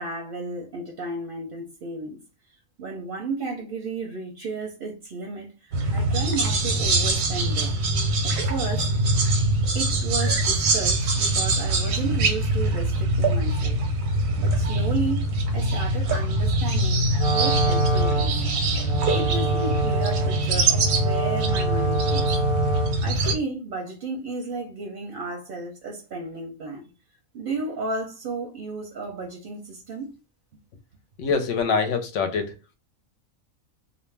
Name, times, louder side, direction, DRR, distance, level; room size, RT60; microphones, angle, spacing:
voice 1, 0.0-2.2 2.8-7.7 8.2-8.9 9.7-13.8 14.4-15.2 15.5-18.4 19.1-22.4 22.7-26.8 27.3-30.1, right 3 dB, 55° right, 0.6 m, -33 dB
sound 1, 5.7-23.4, right 2 dB, 90° right, 1.1 m, -23 dB
Wind instrument woodwind instrument, 17.1-23.2, right 4 dB, 10° right, 0.4 m, -27 dB
voice 2, 31.2-32.7, left 5 dB, 70° left, 0.9 m, -25 dB
2.5 x 2.1 x 3.2 m
omnidirectional pair, 1.4 m